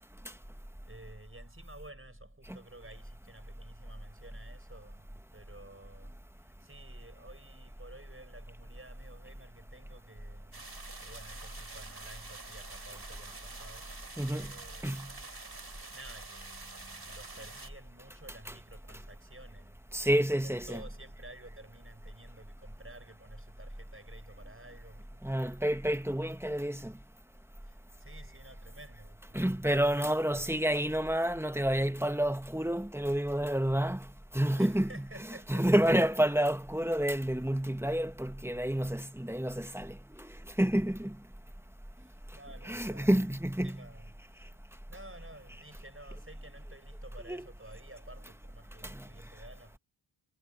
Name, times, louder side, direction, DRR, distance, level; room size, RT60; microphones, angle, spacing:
voice 1, 0.2-10.7 11.0-14.9 15.9-25.6 27.6-29.7 30.3-30.5 34.5-36.1 42.0-44.6 44.9-49.8, right 1 dB, 25° right, 6.0 m, -53 dB
sound 1, 10.5-17.7, right 3 dB, 50° right, 4.8 m, -47 dB
voice 2, 14.2-14.5 14.8-15.1 19.9-20.8 25.2-26.9 29.3-34.1 34.3-35.0 35.5-40.3 40.6-41.2 42.6-43.8 47.3-47.4 48.8-49.1, right 1 dB, 5° right, 1.2 m, -29 dB
wide cardioid pair, 45°, 49 cm